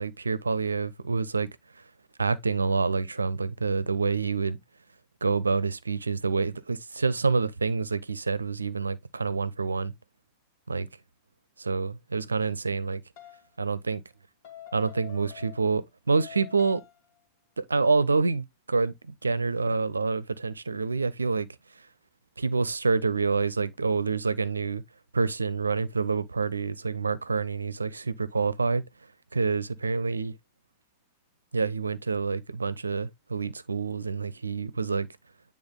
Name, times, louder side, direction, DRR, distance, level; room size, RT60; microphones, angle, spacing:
voice 1, 0.0-1.5 1.8-1.9 2.2-4.6 5.2-9.9 10.7-10.9 11.6-13.0 13.6-14.0 14.7-16.8 17.6-21.5 21.7-21.9 22.4-24.8 25.1-28.8 29.3-30.3 31.5-35.1, right 4 dB, 80° right, 0.6 m, -27 dB
sound 1, 13.2-13.5 14.4-15.9 16.2-17.0, left 11 dB, 50° left, 2.7 m, -47 dB
9.6 x 3.6 x 3.7 m
figure-of-eight pair, 90°, 0 cm